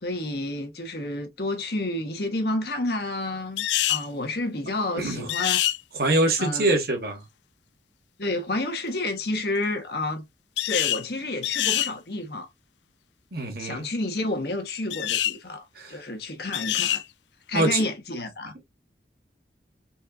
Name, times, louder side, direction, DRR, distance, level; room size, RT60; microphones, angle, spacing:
voice 1, 0.0-5.6 6.4-6.7 8.2-10.2 10.7-12.5 13.6-15.6 15.9-17.0 17.5-18.7, left 2 dB, 60° left, 1.2 m, -30 dB
sound 1, 3.6-4.1 5.3-5.8 10.6-11.0 11.4-11.9 14.9-15.4 16.5-17.0, left 13 dB, 80° left, 0.4 m, -25 dB
voice 2, 4.9-5.3 5.9-7.2 13.3-13.9 15.7-16.0 17.5-17.8, right 2 dB, 55° right, 1.5 m, -24 dB
4.3 x 3.6 x 2.4 m
head